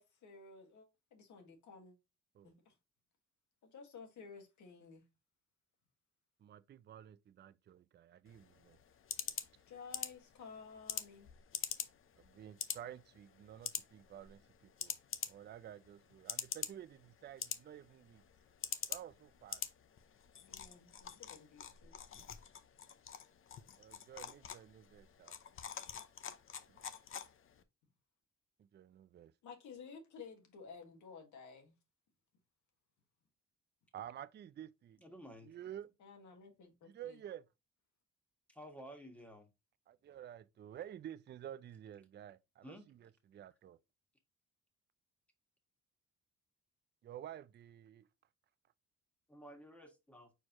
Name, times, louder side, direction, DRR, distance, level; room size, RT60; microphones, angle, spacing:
voice 1, 0.0-1.9 2.4-2.7 3.6-5.0 9.7-11.3 20.5-21.9 29.4-31.7 36.0-37.2, left 5 dB, 75° left, 1.7 m, -54 dB
voice 2, 6.4-8.8 12.2-14.9 15.3-18.2 18.9-19.6 23.8-25.4 26.7-26.9 28.6-29.3 33.9-35.0 35.4-35.9 36.8-37.5 39.9-43.8 47.0-48.1, right 10 dB, 35° right, 0.4 m, -51 dB
sound 1, 8.3-27.6, left 8 dB, 45° left, 0.6 m, -46 dB
voice 3, 35.0-35.5 38.5-39.5 42.6-42.9 49.3-50.3, equal, 5° left, 1.6 m, -53 dB
4.5 x 4.5 x 2.5 m
cardioid pair, 90°, 30 cm